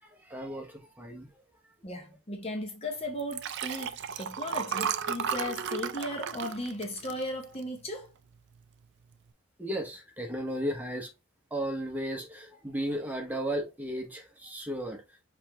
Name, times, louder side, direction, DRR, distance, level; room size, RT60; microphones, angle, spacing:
voice 1, 0.2-1.3 9.6-11.1 11.5-15.0, right 1 dB, 10° right, 1.0 m, -34 dB
voice 2, 1.8-8.1, left 1 dB, 25° left, 0.8 m, -36 dB
Liquid, 3.2-7.8 8.3-8.6 8.8-8.9, right 7 dB, 50° right, 0.4 m, -34 dB
5.6 x 3.3 x 2.8 m
head